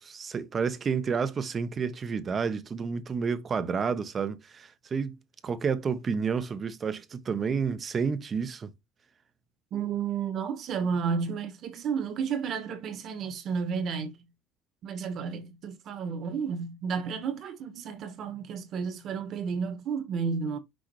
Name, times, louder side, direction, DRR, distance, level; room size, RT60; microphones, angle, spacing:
voice 1, 0.0-5.2 5.4-8.7, right 6 dB, 35° right, 1.0 m, -30 dB
voice 2, 9.7-14.2 14.8-20.6, right 6 dB, 50° right, 1.8 m, -32 dB
6.3 x 4.9 x 3.2 m
supercardioid pair, 105°, 0 cm